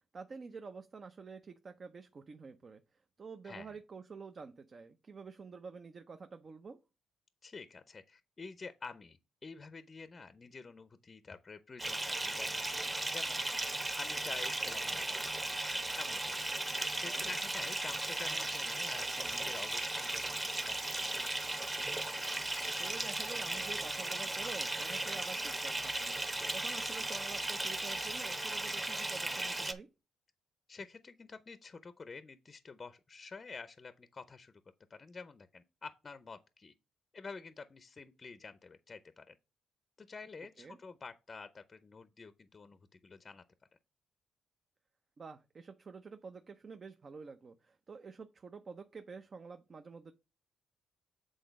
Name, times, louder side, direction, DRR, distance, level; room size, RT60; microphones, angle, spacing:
voice 1, 0.1-2.8 3.2-6.8 16.9-17.3 22.6-26.2 26.5-29.9 40.6-40.8 45.2-50.1, right 4 dB, 40° right, 0.6 m, -48 dB
voice 2, 3.4-3.8 7.4-13.4 14.0-15.6 16.0-21.2 30.7-34.5 34.9-36.7 37.1-39.4 40.0-43.4, left 4 dB, 30° left, 0.6 m, -49 dB
Bathtub (filling or washing) / Fill (with liquid), 11.8-29.7, right 2 dB, 20° right, 1.1 m, -36 dB
8.1 x 3.8 x 5.2 m
cardioid pair, 90°, 0 cm